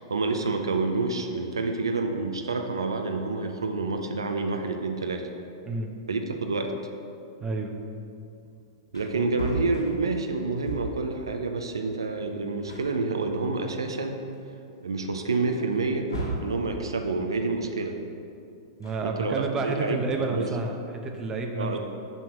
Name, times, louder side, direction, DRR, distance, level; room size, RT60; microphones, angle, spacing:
voice 1, 0.0-5.3 6.1-6.7 8.9-14.2 14.8-16.1 16.4-18.0 19.0-20.5 21.6-21.8, right 3 dB, 85° right, 4 dB, 0.7 m, -28 dB
voice 2, 7.4-7.7 9.1-9.3 18.8-21.8, right 3 dB, 20° right, 3 dB, 1.0 m, -30 dB
Wood, 8.5-8.6 8.8-11.1 12.2-12.3 12.6-13.8 14.3-14.4 15.7-16.6 18.6-19.6, right 1 dB, 90° left, 2.0 m, -36 dB
7.0 x 6.1 x 6.2 m, 2.6 s
hypercardioid pair, 110°, 2 cm